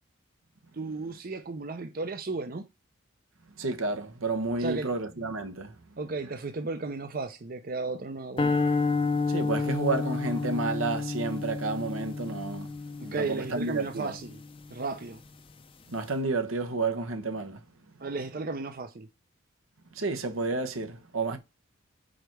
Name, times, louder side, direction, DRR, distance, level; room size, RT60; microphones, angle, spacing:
voice 1, 0.7-2.7 4.6-4.9 6.0-8.6 13.0-14.4 14.7-15.2 18.0-19.1, right 3 dB, 45° right, 0.6 m, -34 dB
voice 2, 3.6-5.7 9.3-14.1 15.9-17.6 19.9-21.4, right 3 dB, 80° right, 1.1 m, -31 dB
sound 1, 8.4-14.7, left 4 dB, 25° left, 0.6 m, -30 dB
5.0 x 4.6 x 6.0 m
head